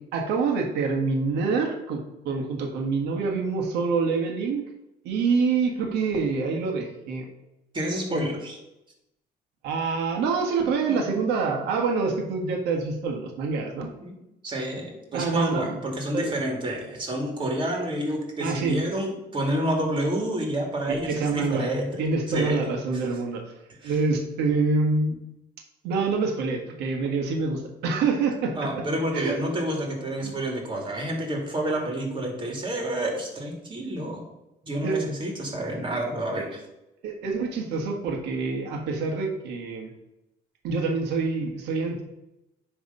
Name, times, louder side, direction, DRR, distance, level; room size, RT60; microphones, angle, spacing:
voice 1, 0.0-4.6 5.0-7.3 8.1-8.2 9.6-13.9 15.1-15.8 16.1-16.3 18.4-18.8 20.9-21.7 22.0-23.4 23.8-25.2 25.8-28.8 29.1-29.4 30.2-30.3 34.8-35.1 37.0-39.9 40.6-42.0, right 4 dB, 85° right, 2 dB, 1.6 m, -26 dB
voice 2, 7.7-8.6 14.0-14.2 14.4-22.0 22.3-22.6 23.8-24.0 28.6-34.2 34.6-36.6, right 1 dB, 30° right, 1 dB, 2.4 m, -29 dB
10.0 x 3.6 x 5.4 m, 0.92 s
cardioid pair, 110°, 17 cm